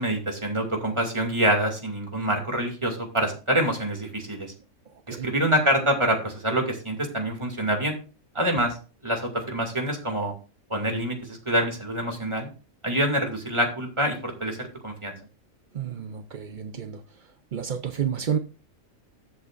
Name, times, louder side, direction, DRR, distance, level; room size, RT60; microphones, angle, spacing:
voice 1, 0.0-4.5 5.1-8.0 8.3-8.8 9.0-10.3 10.7-12.5 12.8-15.1, right 1 dB, 20° right, 2.5 m, -26 dB
voice 2, 4.9-5.3 15.7-18.4, right 8 dB, 45° right, 0.7 m, -31 dB
13.5 x 8.3 x 2.5 m
omnidirectional pair, 1.4 m